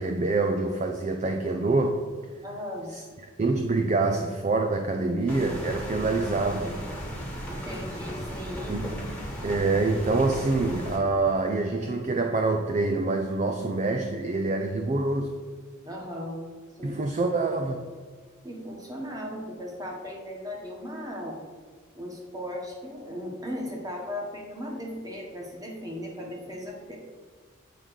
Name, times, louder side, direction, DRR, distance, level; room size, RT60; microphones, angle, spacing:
voice 1, 0.0-2.1 2.9-3.0 3.4-6.8 8.7-8.9 9.4-15.3 16.8-17.8, right 3 dB, 30° right, 5 dB, 0.4 m, -26 dB
voice 2, 2.4-2.9 7.5-8.8 15.8-16.4 16.8-17.0 18.4-21.4 21.9-27.0, equal, 15° right, -1 dB, 1.3 m, -37 dB
sound 1, 5.3-11.0, equal, 5° left, 1.3 m, -36 dB
8.5 x 3.8 x 6.3 m, 1.5 s
head